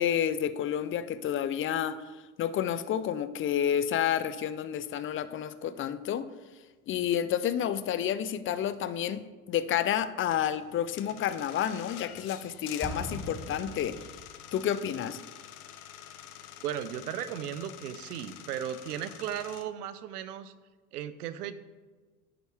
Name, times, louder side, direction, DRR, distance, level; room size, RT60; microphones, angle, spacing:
voice 1, 0.0-2.0 2.4-6.3 6.9-9.2 9.5-14.0 14.5-15.2, left 9 dB, 25° left, 14 dB, 0.5 m, -30 dB
sound 1, 10.3-19.6, left 10 dB, 75° left, 1.1 m, -47 dB
Explosion, 12.8-14.6, equal, 5° right, 2.1 m, -40 dB
voice 2, 16.6-20.5 20.9-21.5, right 10 dB, 75° right, 14 dB, 0.9 m, -36 dB
10.5 x 9.0 x 3.5 m, 1.3 s
hypercardioid pair, 90°, 46 cm